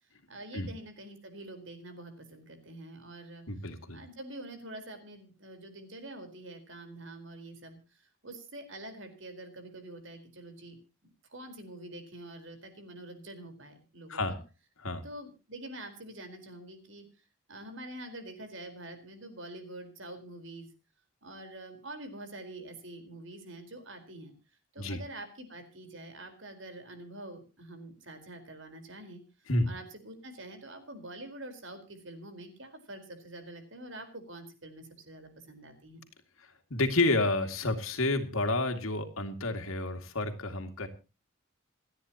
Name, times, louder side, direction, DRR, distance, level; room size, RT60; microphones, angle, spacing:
voice 1, 0.3-3.4 3.9-14.4 15.0-17.0 17.5-20.7 21.2-24.3 24.7-29.2 29.6-36.0, right 1 dB, 65° right, 7 dB, 4.5 m, -46 dB
voice 2, 3.5-4.0 14.1-14.4 14.8-15.0 24.8-25.0 29.5-29.7 36.4-40.9, left 2 dB, 90° left, 6 dB, 2.4 m, -30 dB
28.0 x 9.9 x 3.0 m, 0.31 s
head